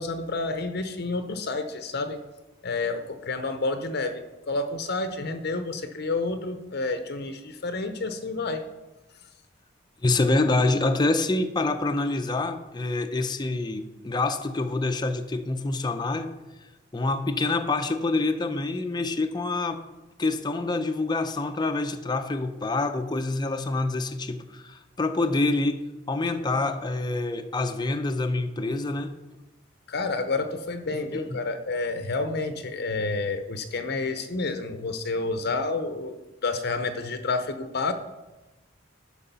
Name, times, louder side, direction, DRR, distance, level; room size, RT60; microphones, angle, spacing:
voice 1, 0.0-2.2 2.6-8.6 29.9-36.1 36.4-37.9, left 3 dB, 55° left, 8 dB, 0.7 m, -29 dB
voice 2, 10.0-16.3 16.9-19.8 20.2-25.8 26.1-29.1 31.1-31.4, left 2 dB, 20° left, 7 dB, 0.6 m, -26 dB
11.5 x 4.8 x 6.8 m, 1.1 s
head